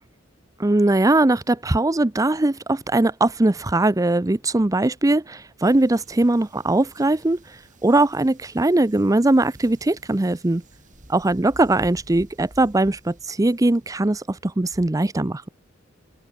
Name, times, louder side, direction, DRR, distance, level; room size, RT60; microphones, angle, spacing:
voice 1, 0.6-10.6 11.1-15.5, right 2 dB, 15° right, 0.6 m, -20 dB
sound 1, 5.6-14.0, right 1 dB, 40° right, 5.6 m, -49 dB
head